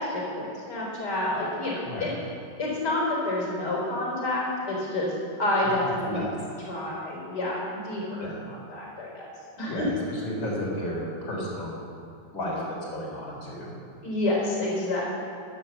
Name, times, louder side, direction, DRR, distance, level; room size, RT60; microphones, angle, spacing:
voice 1, 0.0-2.1 2.6-5.1 5.4-6.4 6.7-9.3 9.6-9.8 14.0-15.0, left 1 dB, 55° left, -4 dB, 4.7 m, -29 dB
voice 2, 1.8-2.1 6.1-6.4 8.2-8.4 9.7-11.8 12.3-13.8, left 1 dB, 85° left, -3 dB, 4.6 m, -33 dB
13.5 x 11.5 x 7.3 m, 2.6 s
omnidirectional pair, 2.1 m